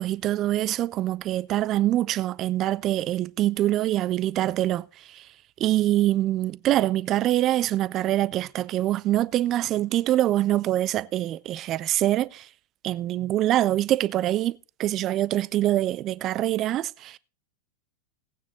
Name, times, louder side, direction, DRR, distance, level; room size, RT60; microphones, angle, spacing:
voice 1, 0.0-5.3 5.6-12.5 12.8-17.2, right 14 dB, 35° right, 0.4 m, -24 dB
17.5 x 9.2 x 3.1 m
figure-of-eight pair, 90°, 0 cm